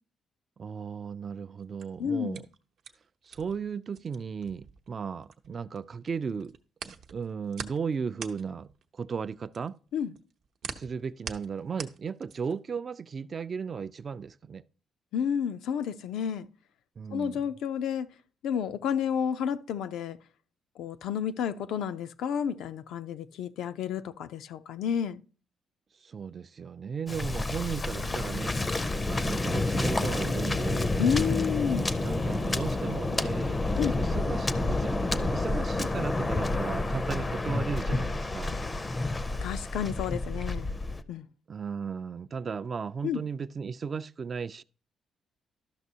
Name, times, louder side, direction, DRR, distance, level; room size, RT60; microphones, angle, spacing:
voice 1, 0.6-2.5 3.2-6.6 6.8-9.8 10.7-14.6 17.0-17.5 26.0-28.6 29.1-30.9 32.0-38.6 41.5-44.6, right 6 dB, 45° right, 0.3 m, -36 dB
sound 1, 1.6-5.8 6.1-12.7, right 6 dB, 70° right, 0.7 m, -43 dB
voice 2, 2.0-2.4 9.9-10.1 15.1-16.5 17.1-18.1 18.4-20.2 20.8-25.2 31.0-31.9 33.8-33.9 39.4-40.7 41.1-41.3 43.0-43.2, left 8 dB, 80° left, 0.4 m, -30 dB
Waves surf, 27.1-41.0, left 2 dB, 25° left, 0.5 m, -29 dB
12.0 x 5.9 x 2.7 m
cardioid pair, 90°, 0 cm